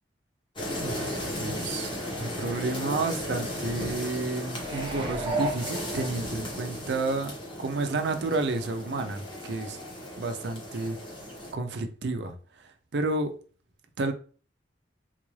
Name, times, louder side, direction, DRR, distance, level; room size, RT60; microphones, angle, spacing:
sound 1, 0.6-11.5, left 1 dB, 25° left, 1.1 m, -36 dB
voice 1, 0.8-7.3 7.6-9.8 10.2-11.0 11.5-13.3 14.0-14.1, right 3 dB, 70° right, 0.5 m, -31 dB
sound 2, 4.6-6.6 7.1-7.2, right 2 dB, 25° right, 0.9 m, -33 dB
3.9 x 2.4 x 3.1 m
head